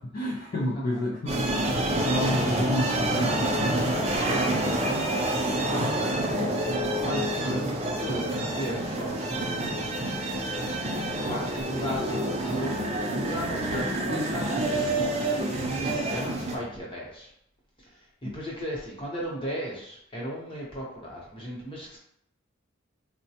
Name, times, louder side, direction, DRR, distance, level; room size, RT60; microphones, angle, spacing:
voice 1, 0.0-4.8 5.3-5.9 6.3-6.8 15.4-16.0 16.4-16.5 18.2-18.4, left 1 dB, 40° left, -3 dB, 0.3 m, -32 dB
sound 1, 1.3-16.6, right 1 dB, 30° right, 0.5 m, -28 dB
voice 2, 4.1-5.9 6.9-10.7 11.0-14.9 15.7-17.3 17.8-22.0, equal, 25° left, -4 dB, 0.8 m, -36 dB
3.9 x 2.1 x 2.8 m, 0.75 s
head